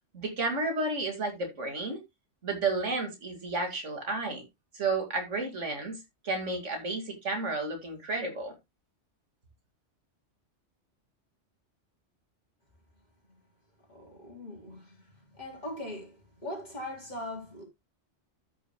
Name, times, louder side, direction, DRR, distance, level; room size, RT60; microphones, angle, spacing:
voice 1, 0.1-2.0 2.4-4.4 4.7-6.0 6.2-8.5, right 3 dB, 80° right, 2.5 m, -32 dB
voice 2, 13.9-17.6, left 1 dB, 35° left, 4.0 m, -41 dB
13.5 x 6.7 x 2.2 m
omnidirectional pair, 1.2 m